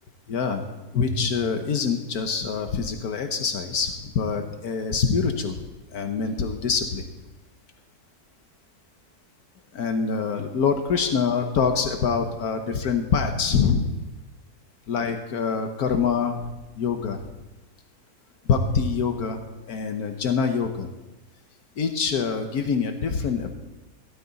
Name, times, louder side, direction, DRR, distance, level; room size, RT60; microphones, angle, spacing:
voice 1, 0.3-5.6 5.9-7.1 9.7-14.0 14.9-16.4 16.8-17.3 18.5-19.4 19.7-20.9 21.8-23.5, left 5 dB, 75° left, 5 dB, 1.5 m, -25 dB
17.0 x 12.0 x 4.1 m, 1.1 s
omnidirectional pair, 1.6 m